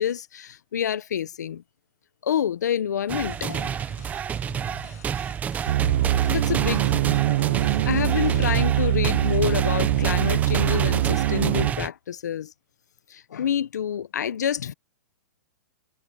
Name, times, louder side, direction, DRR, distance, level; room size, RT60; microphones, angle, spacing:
voice 1, 0.0-1.6 2.2-3.7 6.3-7.6 7.9-12.5 13.1-14.7, left 9 dB, 85° left, 1.0 m, -28 dB
sound 1, 3.1-8.9, left 11 dB, 70° left, 7.4 m, -47 dB
sound 2, 3.1-11.9, right 8 dB, 15° right, 1.0 m, -30 dB
sound 3, 5.7-11.7, right 14 dB, 55° right, 0.9 m, -23 dB
hypercardioid pair, 140°, 9 cm